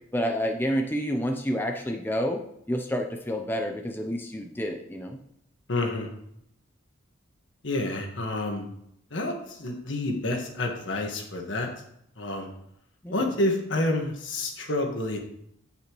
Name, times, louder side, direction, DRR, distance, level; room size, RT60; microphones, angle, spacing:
voice 1, 0.1-2.4 2.7-5.2 13.0-13.3, equal, 10° left, 3 dB, 0.6 m, -29 dB
voice 2, 5.7-6.1 7.6-8.6 9.1-11.7 12.2-12.5 13.1-15.2, left 2 dB, 65° left, 3 dB, 1.6 m, -28 dB
9.1 x 8.3 x 3.1 m, 0.74 s
head